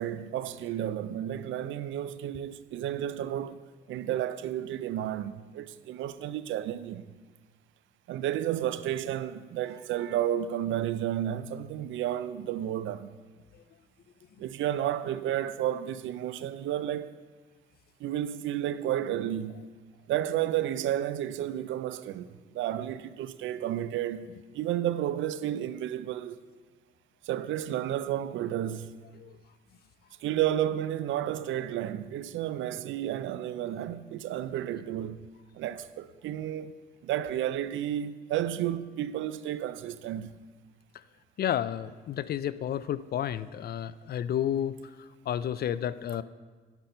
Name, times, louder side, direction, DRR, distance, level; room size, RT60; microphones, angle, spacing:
voice 1, 0.0-3.6 3.9-7.2 8.1-13.2 14.4-17.1 18.0-19.7 20.1-24.3 24.5-26.4 27.2-28.9 30.2-35.2 35.5-36.8 37.0-40.3, right 11 dB, 80° right, 0.4 m, -32 dB
voice 2, 41.4-46.2, left 10 dB, 55° left, 0.4 m, -31 dB
10.5 x 5.8 x 5.4 m
cardioid pair, 90°, 20 cm